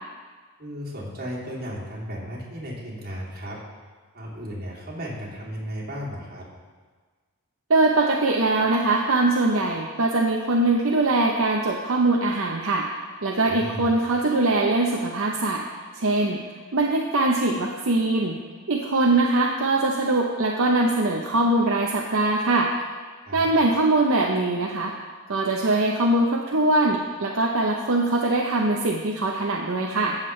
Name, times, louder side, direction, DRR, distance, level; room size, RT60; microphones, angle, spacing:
voice 1, 0.6-3.6 4.1-6.4 13.5-13.9 23.2-23.5, equal, 45° right, -5 dB, 2.8 m, -35 dB
voice 2, 7.7-12.9 13.2-15.6 15.9-16.4 16.7-18.4 18.7-22.7 23.3-24.9 25.3-30.2, right 2 dB, 70° right, 0 dB, 0.7 m, -22 dB
15.5 x 7.3 x 3.2 m, 1.5 s
head